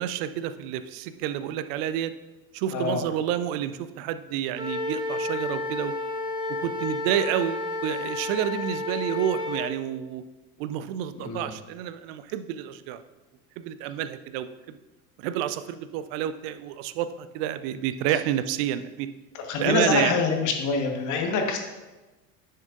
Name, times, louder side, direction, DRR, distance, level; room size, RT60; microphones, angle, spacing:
voice 1, 0.0-2.1 2.5-5.9 6.5-10.2 10.6-13.0 13.6-14.5 15.2-19.1 19.6-20.1, right 10 dB, 40° right, 12 dB, 0.5 m, -29 dB
Wind instrument woodwind instrument, 4.6-9.7, left 2 dB, 10° right, 1.0 m, -31 dB
voice 2, 11.2-11.5 19.3-21.6, left 4 dB, 40° left, 3 dB, 1.4 m, -25 dB
10.0 x 6.5 x 2.6 m, 1.1 s
figure-of-eight pair, 80°, 47 cm